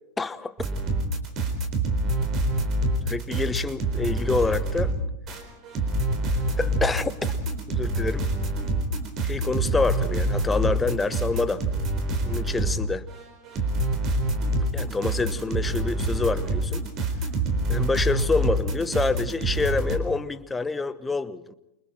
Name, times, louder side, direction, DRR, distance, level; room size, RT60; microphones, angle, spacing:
voice 1, 0.2-0.5 3.1-4.9 6.6-7.3 7.7-8.3 9.2-11.6 12.2-13.0 14.7-16.8 17.7-21.5, left 3 dB, 10° left, 15 dB, 1.0 m, -27 dB
sound 1, 0.6-12.8 13.1-20.0, right 1 dB, 30° right, 4.2 m, -26 dB
28.5 x 25.5 x 4.5 m, 0.85 s
figure-of-eight pair, 90°, 0 cm